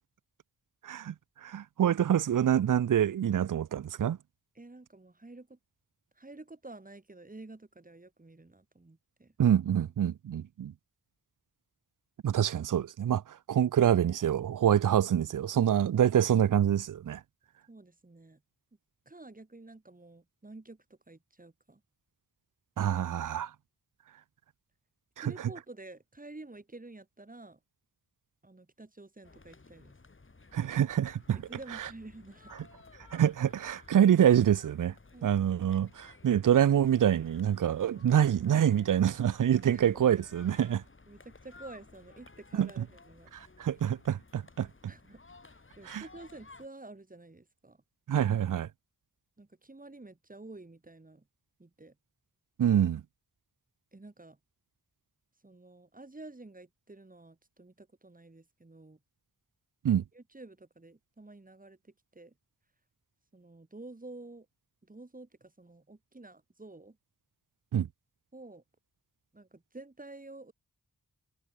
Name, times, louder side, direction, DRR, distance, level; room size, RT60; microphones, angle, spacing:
voice 1, 0.8-1.1 1.4-4.2 9.4-10.7 12.2-17.2 22.8-23.5 25.2-25.3 30.5-31.4 33.1-34.9 35.2-40.8 42.6-42.7 43.3-44.7 45.9-46.0 48.1-48.7 52.6-53.0 59.8-60.0 67.7-67.9, right 9 dB, 70° right, 0.6 m, -26 dB
voice 2, 4.6-5.6 6.2-9.3 17.7-18.4 19.1-21.8 25.2-27.6 28.4-30.0 31.4-32.6 35.1-35.3 39.7-40.2 41.1-43.3 44.9-47.8 49.4-51.3 51.6-52.0 53.9-54.4 55.4-59.0 60.0-62.3 63.3-64.5 64.8-67.0 68.3-68.6 69.3-70.5, right 2 dB, 25° right, 3.6 m, -50 dB
sound 1, 29.2-46.7, left 3 dB, 35° left, 5.0 m, -56 dB
wide cardioid pair, 105°, 33 cm